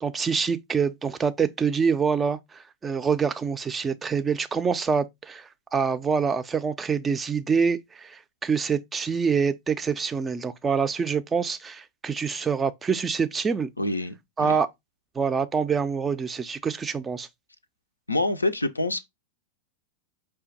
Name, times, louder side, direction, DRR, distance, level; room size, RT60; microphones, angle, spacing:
voice 1, 0.0-13.7 14.4-14.7 15.2-17.3, right 6 dB, 15° right, 0.4 m, -26 dB
voice 2, 13.8-14.6 18.1-19.0, left 2 dB, 80° left, 0.4 m, -27 dB
4.9 x 2.2 x 3.8 m
figure-of-eight pair, 90°, 0 cm